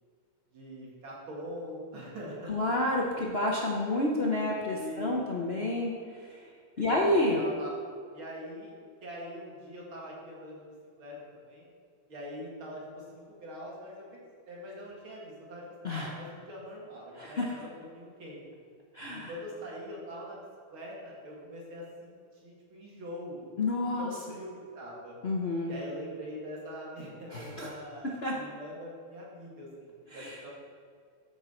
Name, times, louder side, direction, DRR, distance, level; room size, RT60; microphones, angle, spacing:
voice 1, 0.5-2.5 4.8-5.2 6.8-7.7 8.1-8.7 9.0-10.6 11.0-11.2 11.5-11.7 12.1-18.4 19.1-20.4 20.7-22.1 22.4-23.5 24.0-25.2 25.7-30.5, equal, 65° right, -4 dB, 2.8 m, -43 dB
voice 2, 2.5-6.5 6.8-7.4 15.8-16.1 17.1-17.5 18.9-19.3 23.6-24.1 25.2-25.7 27.3-27.7 28.0-28.3 30.1-30.4, left 1 dB, 65° left, -3 dB, 0.6 m, -30 dB
13.0 x 5.2 x 4.4 m, 2.2 s
omnidirectional pair, 2.4 m